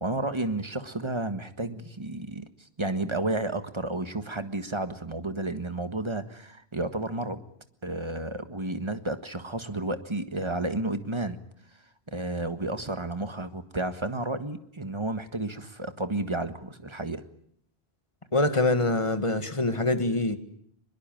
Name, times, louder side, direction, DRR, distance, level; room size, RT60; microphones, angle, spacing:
voice 1, 0.0-2.5 2.8-7.4 7.8-11.4 12.1-17.2, right 2 dB, 25° right, 10 dB, 1.6 m, -31 dB
voice 2, 18.3-20.4, left 2 dB, 30° left, 9 dB, 1.8 m, -24 dB
23.0 x 22.0 x 9.1 m, 0.68 s
omnidirectional pair, 1.1 m